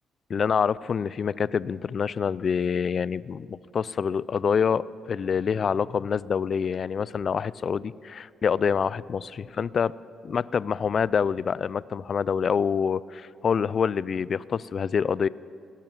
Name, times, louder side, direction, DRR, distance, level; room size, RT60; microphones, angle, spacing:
voice 1, 0.3-9.9 10.2-15.3, left 6 dB, 50° left, 21 dB, 0.3 m, -26 dB
17.0 x 10.5 x 7.3 m, 2.5 s
cardioid pair, 90°, 0 cm